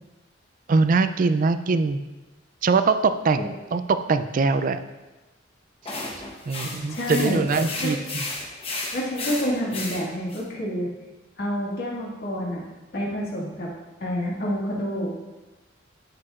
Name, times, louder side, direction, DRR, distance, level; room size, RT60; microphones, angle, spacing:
voice 1, 0.7-2.0 2.6-4.8 6.5-8.0, right 4 dB, 45° right, 10 dB, 0.4 m, -22 dB
sound 1, 5.8-10.4, left 2 dB, 30° left, 1.1 m, -34 dB
voice 2, 6.9-7.4 7.8-7.9 8.9-10.9 11.4-12.6 12.9-13.7 14.0-15.2, equal, 55° left, -4 dB, 1.9 m, -28 dB
12.5 x 4.8 x 2.5 m, 1.1 s
head